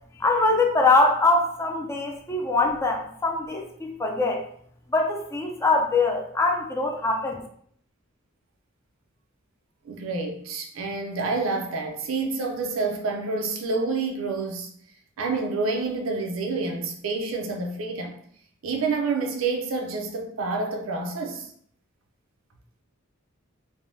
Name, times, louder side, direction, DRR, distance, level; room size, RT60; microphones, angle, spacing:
voice 1, 0.2-4.4 4.9-7.4, left 3 dB, 15° left, 2 dB, 0.4 m, -23 dB
voice 2, 9.8-14.7 15.2-18.2 18.6-21.5, right 3 dB, 80° right, 3 dB, 0.5 m, -28 dB
3.4 x 2.1 x 2.6 m, 0.63 s
head